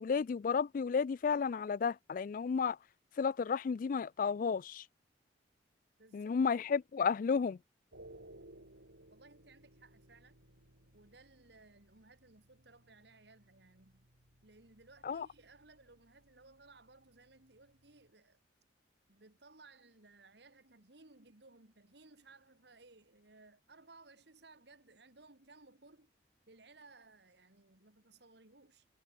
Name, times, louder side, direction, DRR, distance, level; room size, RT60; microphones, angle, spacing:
voice 1, 0.0-2.8 3.2-4.8 6.1-7.6 15.0-15.3, left 5 dB, 45° left, 0.3 m, -32 dB
voice 2, 6.0-6.4 9.1-10.4 10.9-14.1 14.4-18.4 19.1-26.1 26.5-28.9, right 3 dB, 60° right, 2.1 m, -61 dB
sound 1, 7.9-18.1, right 1 dB, 85° right, 7.6 m, -61 dB
head